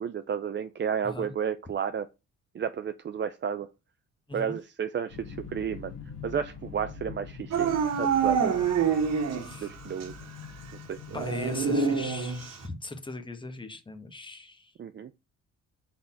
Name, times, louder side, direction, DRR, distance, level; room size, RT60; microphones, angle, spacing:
voice 1, 0.0-2.1 2.5-3.7 4.3-5.9 6.2-8.6 9.6-10.1 10.9-11.0 14.8-15.1, right 7 dB, 40° right, 0.5 m, -32 dB
sound 1, 5.1-12.4, left 5 dB, 55° left, 1.7 m, -44 dB
Dog / Siren, 7.5-9.7 10.0-10.1 11.1-12.6, right 6 dB, 60° right, 1.5 m, -26 dB
voice 2, 11.1-14.7, left 2 dB, 15° left, 1.4 m, -39 dB
5.3 x 4.3 x 5.8 m
cardioid pair, 90°, 30 cm